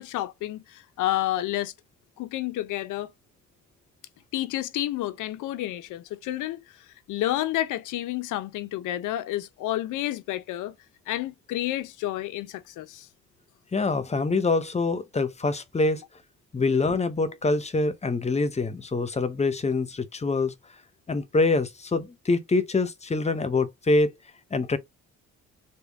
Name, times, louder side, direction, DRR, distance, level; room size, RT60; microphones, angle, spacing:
voice 1, 0.0-1.7 2.2-3.1 4.3-6.8 7.1-10.7 11.1-13.1, left 14 dB, 85° left, 0.6 m, -30 dB
voice 2, 13.7-16.0 16.5-20.5 21.1-24.1 24.5-24.8, left 3 dB, 20° left, 0.7 m, -25 dB
3.5 x 2.3 x 3.4 m
cardioid pair, 90°, 30 cm